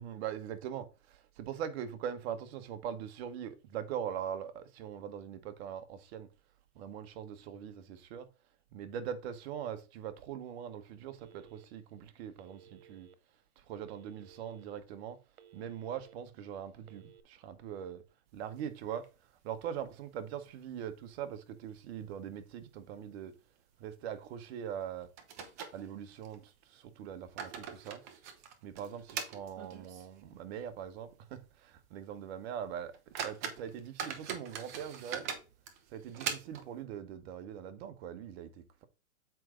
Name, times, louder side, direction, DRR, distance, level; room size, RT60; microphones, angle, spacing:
voice 1, 0.0-6.3 6.7-8.3 8.7-13.1 13.6-15.2 15.5-18.0 18.3-19.1 19.4-23.3 23.8-25.1 25.7-28.0 28.6-35.3 35.9-38.8, right 9 dB, 45° right, 1.3 m, -42 dB
Telephone, 11.2-11.9 12.4-13.1 13.8-14.6 15.1-16.1 16.8-17.2, right 9 dB, 85° right, 1.3 m, -58 dB
sound 1, 18.4-19.4 19.7-19.8 20.2-20.3 20.9-21.4 21.7-21.8 22.4-22.6 22.9-23.1 24.4-24.5 25.2-26.4 27.0-30.2 30.6-30.7 31.2-31.3 31.8-31.9 32.5-32.6 32.9-36.8, right 7 dB, 15° right, 0.3 m, -42 dB
7.6 x 5.0 x 3.8 m
hypercardioid pair, 140°, 43 cm